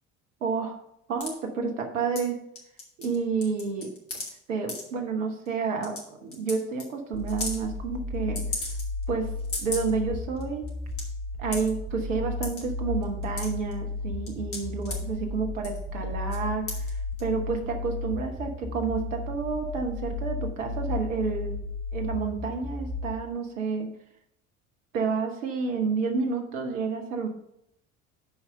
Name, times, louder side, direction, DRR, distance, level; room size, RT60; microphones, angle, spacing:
voice 1, 0.4-0.8 1.1-2.4 3.0-3.9 4.5-8.7 9.1-9.3 9.6-10.6 11.4-21.6 21.9-23.9 24.9-27.3, right 5 dB, 70° right, 3 dB, 1.1 m, -30 dB
sound 1, 1.2-1.3 2.1-2.3 2.5-3.2 3.4-4.3 4.7-4.8 5.4-5.5 5.8-6.0 6.3-6.5 6.8-6.9 7.3-7.6 8.3-9.0 9.4-9.9 10.4-10.5 10.7-11.0 11.5-11.7 12.4-12.6 13.0-13.7 14.3-14.9 15.6-15.8 16.3-16.4 16.7-16.9 17.2-17.3, left 3 dB, 35° left, 2.8 m, -34 dB
sound 2, 7.1-23.1, left 3 dB, 35° right, 2.5 m, -34 dB
6.9 x 4.8 x 6.7 m, 0.76 s
figure-of-eight pair, 60°, 39 cm